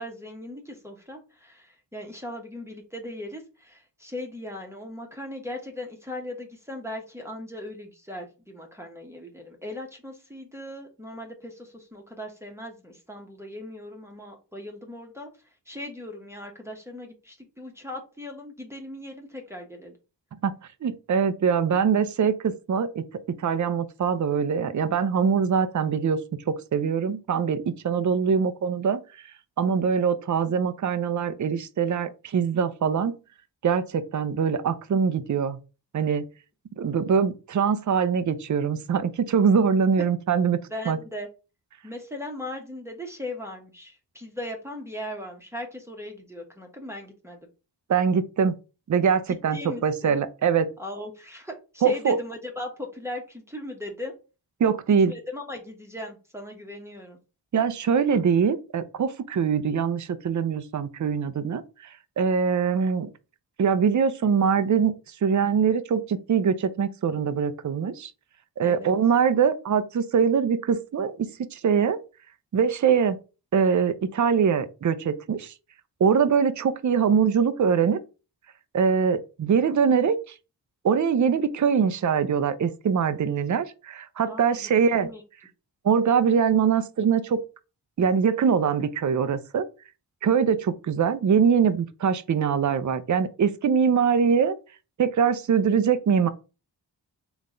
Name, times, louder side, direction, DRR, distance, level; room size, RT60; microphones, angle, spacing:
voice 1, 0.0-15.3 15.7-20.0 40.0-40.1 40.7-41.3 41.8-47.4 49.3-50.2 50.8-54.1 55.1-57.2 68.6-68.9 84.2-85.2, left 1 dB, 5° right, 1.2 m, -38 dB
voice 2, 20.8-23.0 23.4-29.0 29.6-33.1 33.6-35.6 35.9-36.2 36.8-41.0 47.9-48.6 48.9-50.7 51.8-52.2 54.6-55.1 57.5-61.6 62.2-63.1 63.6-64.9 65.2-68.1 68.6-72.0 72.5-73.2 73.5-75.5 76.0-78.0 78.7-80.3 80.8-85.1 85.8-87.4 88.0-89.7 90.2-94.6 95.0-96.3, right 6 dB, 40° right, 0.6 m, -23 dB
3.8 x 3.5 x 3.8 m
cardioid pair, 55°, 44 cm